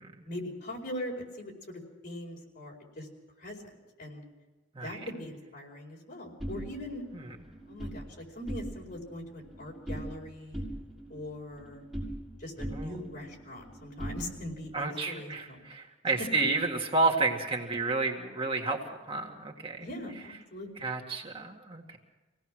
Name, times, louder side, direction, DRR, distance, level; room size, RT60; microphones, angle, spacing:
voice 1, 0.2-3.1 3.4-3.6 4.0-4.2 4.7-7.0 7.7-10.6 11.1-11.8 12.4-15.7 16.0-16.1 19.8-20.9, left 1 dB, 55° left, 0 dB, 4.8 m, -41 dB
sound 1, 6.4-8.0 8.4-9.0 9.3-10.2 10.5-12.3 12.6-14.7, right 1 dB, ahead, 6.8 m, -40 dB
voice 2, 14.7-18.8 19.1-19.9 20.8-22.0, right 3 dB, 30° right, 1 dB, 1.9 m, -31 dB
25.5 x 17.5 x 6.3 m, 1.2 s
head